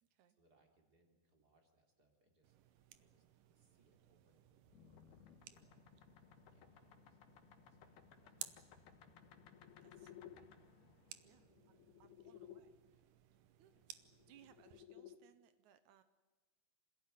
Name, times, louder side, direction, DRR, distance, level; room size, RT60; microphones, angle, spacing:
voice 1, 0.0-2.7 3.0-5.0 5.4-5.9 6.5-7.2 7.6-9.2 10.0-10.7 11.2-12.5 12.9-13.0 13.7-13.8, right 2 dB, 25° right, 2 dB, 3.8 m, -77 dB
sound 1, 2.4-14.8, right 12 dB, 70° right, 2.2 m, -59 dB
sound 2, 4.7-12.6 13.9-15.2, left 10 dB, 75° left, 3.1 m, -60 dB
voice 2, 9.8-10.1 11.2-12.7 13.6-13.7 14.3-16.0, right 10 dB, 85° right, 11 dB, 1.6 m, -67 dB
27.0 x 16.0 x 9.3 m, 1.3 s
omnidirectional pair, 4.8 m